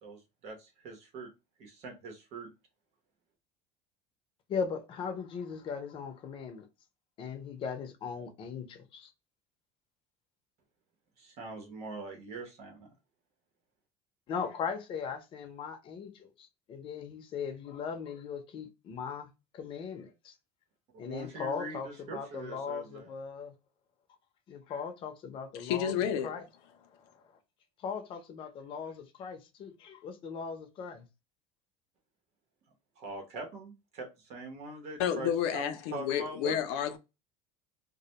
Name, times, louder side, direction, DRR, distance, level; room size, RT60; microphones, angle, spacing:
voice 1, 0.0-1.3 1.6-2.5 11.2-12.9 21.0-23.1 33.0-36.7, right 3 dB, 60° right, 0.8 m, -43 dB
voice 2, 4.5-6.7 7.2-9.1 14.3-20.3 21.0-23.5 24.5-25.9 26.2-26.4 26.9-27.2 27.8-31.1, left 6 dB, 40° left, 0.6 m, -39 dB
voice 3, 25.6-26.3 35.0-37.0, left 9 dB, 85° left, 0.4 m, -30 dB
2.2 x 2.1 x 2.8 m
cardioid pair, 140°, 13 cm